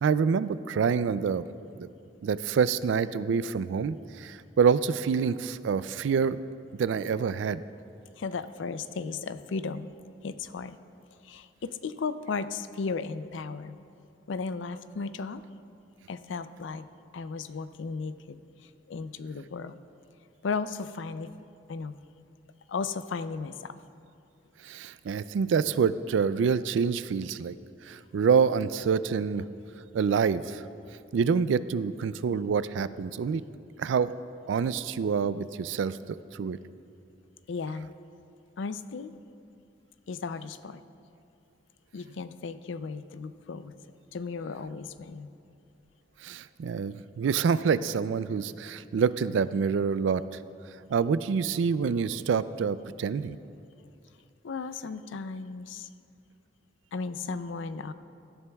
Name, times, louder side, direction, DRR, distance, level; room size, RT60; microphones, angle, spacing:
voice 1, 0.0-1.4 1.8-1.9 2.2-6.4 6.8-7.6 24.6-27.5 27.9-29.4 29.9-30.6 31.1-33.4 33.8-34.1 34.5-36.0 36.3-36.6 46.2-50.2 50.9-53.4, right 6 dB, 80° right, 16 dB, 0.3 m, -26 dB
voice 2, 8.1-9.9 10.2-10.8 11.2-13.8 14.3-15.4 16.1-16.9 17.1-19.8 20.4-21.4 21.7-21.9 22.7-23.8 37.5-37.9 38.6-39.1 40.1-40.8 41.9-43.7 44.1-45.3 54.4-55.9 56.9-57.9, left 4 dB, 80° left, 13 dB, 0.4 m, -35 dB
17.5 x 12.5 x 2.3 m, 2.6 s
head